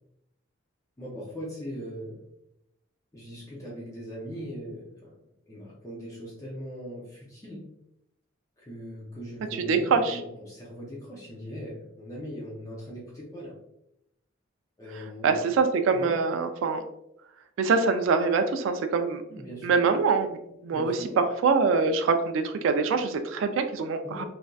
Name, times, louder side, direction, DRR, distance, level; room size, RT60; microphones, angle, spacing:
voice 1, 1.0-2.3 3.1-5.2 5.5-7.7 8.6-13.6 14.8-15.4 15.9-16.1 19.3-19.8 20.7-21.2 24.0-24.2, equal, 15° left, -5 dB, 0.5 m, -40 dB
voice 2, 9.5-10.2 15.2-16.8 17.6-19.2 19.6-20.3 20.6-24.2, right 4 dB, 70° right, 7 dB, 0.3 m, -24 dB
3.2 x 2.5 x 2.3 m, 0.82 s
head